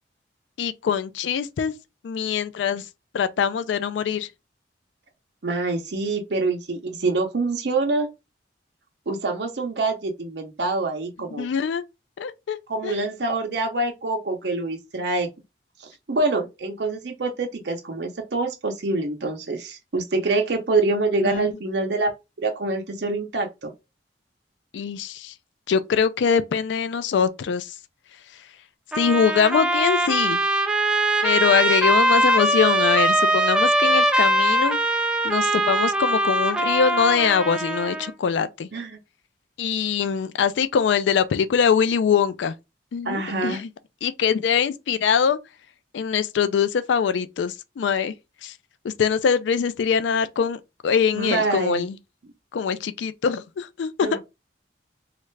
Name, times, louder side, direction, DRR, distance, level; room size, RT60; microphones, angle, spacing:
voice 1, 0.6-1.7 2.0-2.8 3.1-4.3 11.4-11.8 12.2-12.6 12.8-13.0 21.2-21.5 24.7-25.3 25.7-27.7 29.0-30.4 31.2-34.8 35.2-38.7 39.6-42.5 42.9-43.7 44.0-45.4 45.9-48.1 48.4-48.5 48.8-52.0 52.5-54.2, left 7 dB, 90° left, 0.4 m, -23 dB
voice 2, 5.4-8.1 9.1-11.5 12.7-15.3 15.8-22.1 22.4-23.7 38.7-39.0 43.0-43.6 51.1-51.8 54.0-54.2, right 3 dB, 65° right, 0.7 m, -25 dB
Trumpet, 28.9-38.1, right 1 dB, 5° right, 0.4 m, -21 dB
3.2 x 2.4 x 3.2 m
head